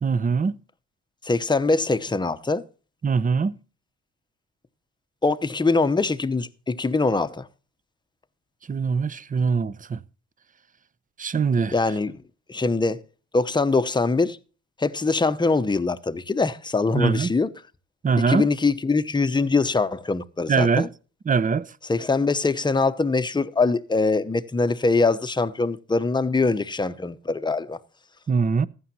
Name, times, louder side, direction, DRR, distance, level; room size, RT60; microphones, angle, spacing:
voice 1, 0.0-0.6 3.0-3.6 8.7-10.0 11.2-11.7 16.9-17.3 18.0-18.5 20.5-20.9 21.3-21.7 28.3-28.7, right 5 dB, 25° right, 0.7 m, -22 dB
voice 2, 1.2-2.6 5.2-7.5 11.7-12.1 12.5-13.0 13.3-14.4 14.8-17.5 18.3-20.9 21.9-27.8, left 3 dB, 15° left, 0.8 m, -23 dB
15.5 x 11.0 x 2.8 m
cardioid pair, 90°, 30 cm